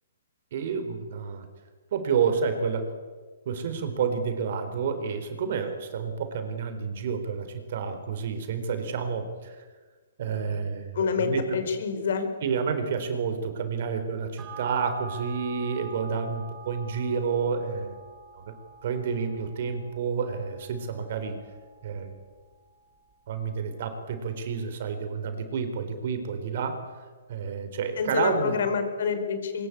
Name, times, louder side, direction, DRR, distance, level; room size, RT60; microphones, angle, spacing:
voice 1, 0.5-1.5 1.9-2.9 3.5-9.6 10.2-11.6 12.4-17.9 18.3-18.5 18.8-21.4 21.8-22.2 23.3-28.6, right 6 dB, 50° right, 8 dB, 4.0 m, -30 dB
voice 2, 10.9-12.3 28.0-29.7, left 6 dB, 60° left, 8 dB, 5.1 m, -27 dB
sound 1, 14.4-23.1 23.5-23.6, right 4 dB, 10° right, 6.4 m, -45 dB
23.5 x 22.0 x 8.6 m, 1.4 s
hypercardioid pair, 160°, 0 cm